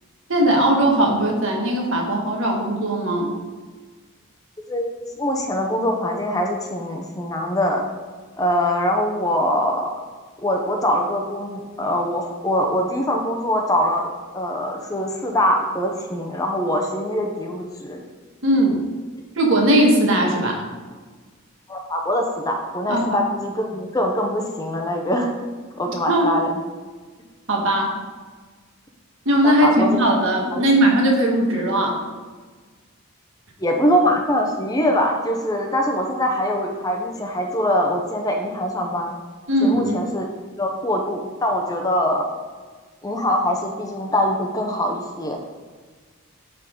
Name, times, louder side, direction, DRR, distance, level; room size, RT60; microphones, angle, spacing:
voice 1, 0.3-3.3 18.4-18.8 19.3-20.6 22.9-23.2 25.9-26.4 27.5-27.9 29.2-32.0 39.5-40.0, right 1 dB, 60° right, 0 dB, 1.5 m, -19 dB
voice 2, 4.7-7.9 8.4-10.0 10.4-18.0 21.7-25.3 25.8-26.6 29.4-30.2 30.5-30.6 33.6-39.2 39.6-40.3 40.6-42.3 43.0-45.4, equal, 15° left, 2 dB, 0.7 m, -23 dB
11.0 x 3.9 x 3.8 m, 1.4 s
head